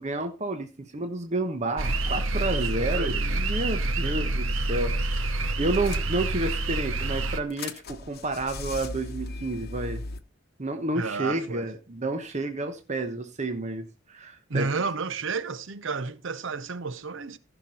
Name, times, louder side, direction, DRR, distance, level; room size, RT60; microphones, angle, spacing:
voice 1, 0.0-10.0 10.6-14.7, right 2 dB, 35° right, 1.1 m, -30 dB
sound 1, 1.8-7.4, right 2 dB, 90° right, 1.1 m, -27 dB
voice 2, 3.0-3.4 4.0-4.4 10.9-11.7 14.5-17.4, right 4 dB, 65° right, 0.7 m, -32 dB
sound 2, 5.0-5.1 5.3-5.4 5.7-6.5 7.0-10.2, left 3 dB, 55° left, 1.0 m, -38 dB
15.0 x 6.1 x 4.3 m
head